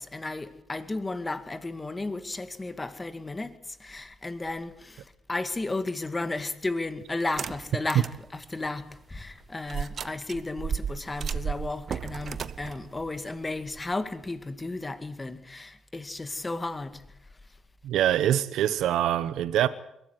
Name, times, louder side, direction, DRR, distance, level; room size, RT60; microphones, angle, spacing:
voice 1, 0.0-17.6, left 2 dB, 20° left, 2.1 m, -34 dB
sound 1, 7.2-8.2 8.7-8.8 9.7-13.9, right 7 dB, 50° right, 0.8 m, -34 dB
voice 2, 17.8-19.7, right 11 dB, 85° right, 0.8 m, -24 dB
22.0 x 14.5 x 9.5 m
cardioid pair, 90°, 0 cm